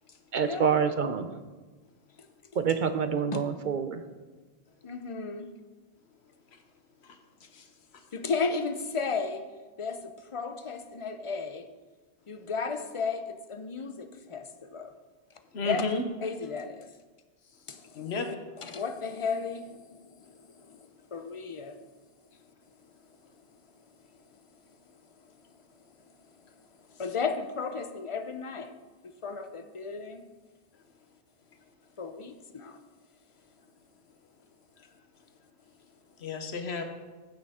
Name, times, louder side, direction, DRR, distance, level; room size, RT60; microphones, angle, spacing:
voice 1, 0.3-1.3 2.6-4.0, right 6 dB, 55° right, 9 dB, 0.7 m, -27 dB
voice 2, 4.8-5.5 8.1-9.5 9.8-11.7 12.3-14.9 15.6-15.8 16.2-16.9 17.7-21.8 27.0-28.7 29.2-30.2 32.0-32.8, left 5 dB, 35° left, 8 dB, 0.6 m, -34 dB
voice 3, 15.5-16.1 17.9-18.3 36.2-36.8, left 3 dB, 85° left, 6 dB, 1.3 m, -32 dB
15.0 x 6.6 x 3.6 m, 1.3 s
omnidirectional pair, 1.1 m